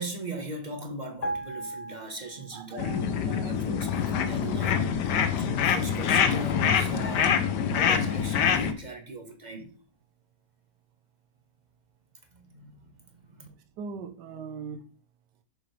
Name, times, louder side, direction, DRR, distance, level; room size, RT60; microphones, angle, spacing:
voice 1, 0.0-9.7 12.3-12.7 13.3-13.5, right 1 dB, 30° right, 1.2 m, -39 dB
sound 1, 1.2-2.8 3.1-3.3, right 1 dB, 55° left, 0.4 m, -36 dB
voice 2, 2.5-3.6 13.5-14.8, right 5 dB, 80° right, 1.5 m, -41 dB
sound 2, 2.8-8.7, left 7 dB, 80° left, 1.4 m, -25 dB
7.2 x 6.7 x 3.3 m
omnidirectional pair, 1.8 m